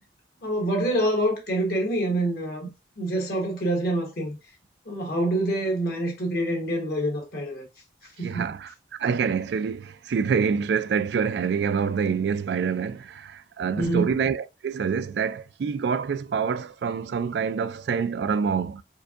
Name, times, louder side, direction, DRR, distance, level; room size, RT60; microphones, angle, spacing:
voice 1, 0.4-2.7 3.0-4.4 4.9-7.6 8.2-8.5 13.8-14.1, right 1 dB, 55° left, 1.5 m, -26 dB
voice 2, 8.2-8.7 9.0-18.8, right 6 dB, 65° right, 0.3 m, -26 dB
4.5 x 2.6 x 2.4 m
head